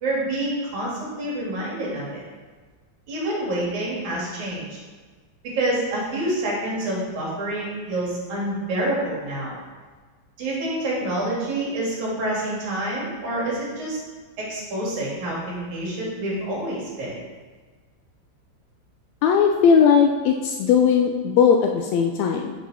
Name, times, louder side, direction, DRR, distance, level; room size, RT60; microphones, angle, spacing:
voice 1, 0.0-2.2 3.1-4.8 5.4-9.5 10.4-14.0 14.4-17.1, right 1 dB, 80° right, -5 dB, 3.7 m, -27 dB
voice 2, 19.2-22.5, left 7 dB, 80° left, 3 dB, 1.7 m, -18 dB
7.3 x 7.3 x 4.1 m, 1.4 s
omnidirectional pair, 3.3 m